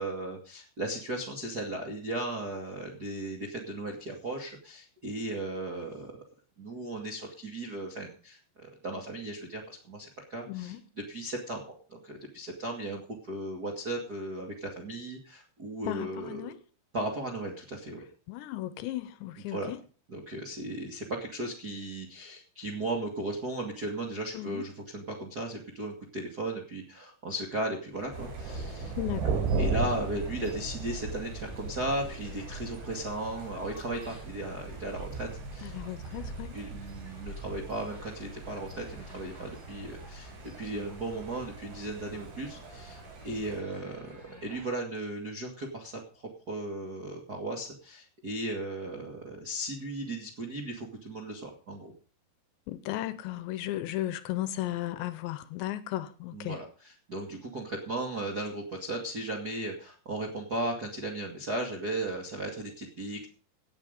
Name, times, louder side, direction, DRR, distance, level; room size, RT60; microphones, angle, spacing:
voice 1, 0.0-6.2 6.6-16.5 16.9-18.0 19.5-19.7 20.1-28.9 29.6-35.7 36.5-51.9 56.3-63.3, right 2 dB, 35° right, 1.6 m, -36 dB
voice 2, 10.5-10.8 15.9-16.6 18.3-19.8 24.3-24.6 29.0-29.4 35.6-36.6 52.7-56.6, left 14 dB, 80° left, 2.8 m, -35 dB
sound 1, 27.9-44.7, equal, 10° right, 5.9 m, -51 dB
Thunder, 28.1-43.6, right 3 dB, 75° right, 6.7 m, -37 dB
17.0 x 8.9 x 5.3 m
omnidirectional pair, 5.4 m